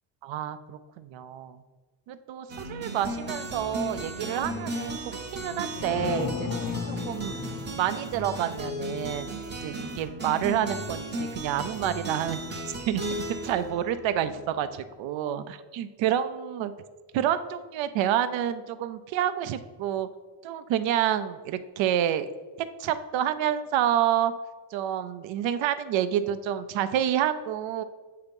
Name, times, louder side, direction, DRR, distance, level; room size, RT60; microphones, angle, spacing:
voice 1, 0.2-1.6 2.1-5.0 5.3-7.4 7.7-9.4 9.6-16.7 17.1-20.1 20.4-22.3 22.6-24.3 24.7-27.8, right 10 dB, 85° right, 12 dB, 0.5 m, -28 dB
sound 1, 2.5-14.8, right 1 dB, 25° right, 0.6 m, -36 dB
sound 2, 5.5-9.1, left 6 dB, 35° left, 0.4 m, -35 dB
8.1 x 2.8 x 5.2 m, 1.4 s
cardioid pair, 170°, 44 cm